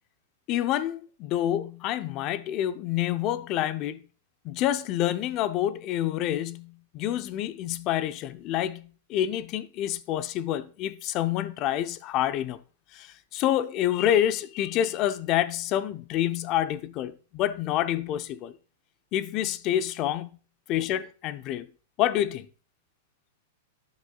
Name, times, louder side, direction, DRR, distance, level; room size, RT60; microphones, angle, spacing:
voice 1, 0.5-4.0 4.4-12.6 12.9-18.6 19.1-20.4 20.7-21.7 22.0-22.5, left 12 dB, 40° left, 0.6 m, -28 dB
11.5 x 6.2 x 2.3 m
hypercardioid pair, 125°, 0 cm